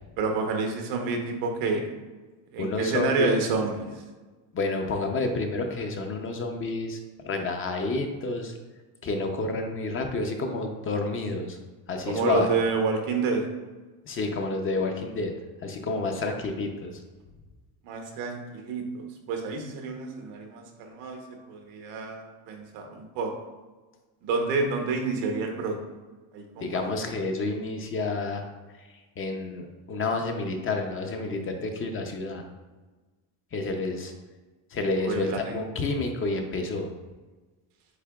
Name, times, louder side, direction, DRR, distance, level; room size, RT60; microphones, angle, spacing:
voice 1, 0.2-1.9 2.5-4.0 12.0-13.4 17.8-21.2 21.5-23.3 24.2-25.8 26.3-26.9 35.0-35.6, right 4 dB, 90° right, 3 dB, 1.0 m, -29 dB
voice 2, 2.6-3.5 4.5-7.0 7.2-8.5 9.0-11.6 11.9-12.5 14.1-15.3 15.6-17.0 26.6-28.5 28.8-32.4 33.5-34.1 34.7-36.9, left 3 dB, 30° left, 4 dB, 0.5 m, -29 dB
8.1 x 2.8 x 2.3 m, 1.3 s
cardioid pair, 125°, 43 cm